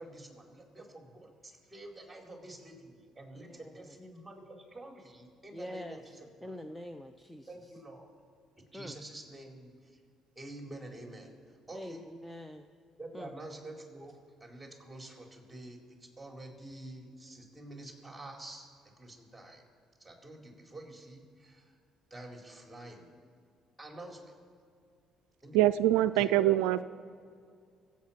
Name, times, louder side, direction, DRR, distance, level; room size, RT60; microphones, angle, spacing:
voice 1, 0.0-6.5 7.5-8.1 8.7-10.0 10.3-12.0 13.0-19.6 20.0-21.8 22.1-23.1 23.8-24.3 25.4-25.6 26.1-26.8, right 1 dB, 10° right, 1 dB, 4.4 m, -48 dB
voice 2, 3.4-3.8 5.5-6.0 6.4-7.5 8.7-9.0 11.7-12.6 13.1-13.3, equal, 5° left, 8 dB, 0.9 m, -44 dB
voice 3, 25.5-26.8, right 14 dB, 80° right, 14 dB, 0.3 m, -24 dB
25.0 x 8.5 x 5.9 m, 2.3 s
hypercardioid pair, 55°, 0 cm